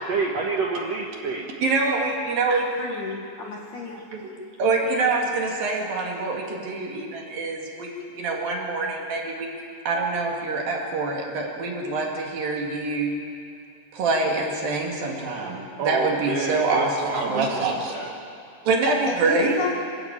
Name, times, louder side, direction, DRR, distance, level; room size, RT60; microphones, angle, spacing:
voice 1, 0.1-1.5 15.8-18.1, right 4 dB, 80° right, -1 dB, 1.4 m, -28 dB
voice 2, 1.6-3.0 4.1-9.5 9.9-13.2 13.9-18.0 18.7-19.6, right 3 dB, 55° right, 0 dB, 3.6 m, -25 dB
voice 3, 2.8-4.0 19.2-19.7, left 4 dB, 55° left, -1 dB, 2.3 m, -32 dB
26.5 x 12.5 x 8.8 m, 2.5 s
omnidirectional pair, 5.4 m